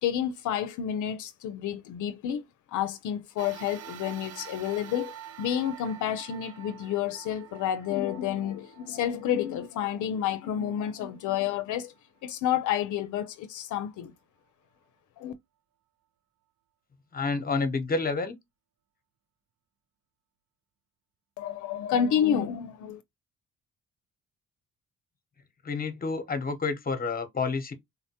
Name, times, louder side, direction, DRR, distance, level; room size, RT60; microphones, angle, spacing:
voice 1, 0.0-2.4 2.7-11.9 12.2-14.1 15.2-15.3 21.4-23.0, left 9 dB, 75° left, 0.6 m, -30 dB
sound 1, 3.4-12.0 12.6-12.7 13.8-13.9, right 11 dB, 55° right, 0.6 m, -47 dB
voice 2, 17.1-18.4 25.6-27.7, left 4 dB, 30° left, 0.9 m, -29 dB
4.0 x 2.1 x 2.8 m
cardioid pair, 90°, 30 cm